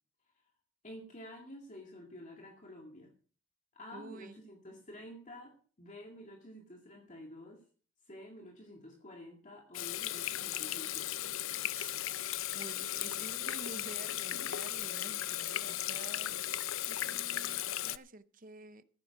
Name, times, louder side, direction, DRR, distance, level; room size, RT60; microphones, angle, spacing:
voice 1, 0.8-3.1 3.7-7.6 8.0-11.2 14.3-14.5, left 1 dB, 40° left, 1 dB, 2.2 m, -50 dB
voice 2, 3.9-4.4 11.7-12.0 12.5-16.4 16.9-18.8, right 3 dB, 45° right, 12 dB, 0.8 m, -50 dB
Water tap faucet / Sink (filling or washing), 9.7-18.0, left 13 dB, 80° left, 0.6 m, -36 dB
14.5 x 8.9 x 6.0 m, 0.42 s
head